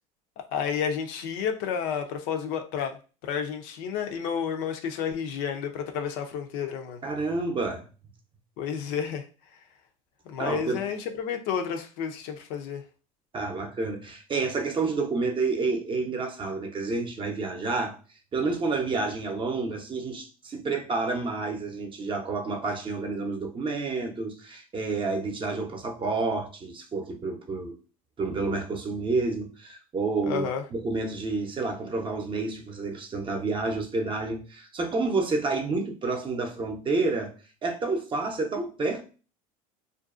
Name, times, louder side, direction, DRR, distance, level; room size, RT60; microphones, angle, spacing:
voice 1, 0.5-2.9 3.2-7.0 8.6-9.2 10.3-12.8 30.2-30.6, left 7 dB, 65° left, 0.5 m, -31 dB
voice 2, 7.0-7.8 10.4-10.8 13.3-18.0 18.3-27.7 28.2-37.3 37.6-39.0, right 3 dB, 25° right, 0.6 m, -29 dB
2.5 x 2.2 x 2.4 m
supercardioid pair, 90°, 19 cm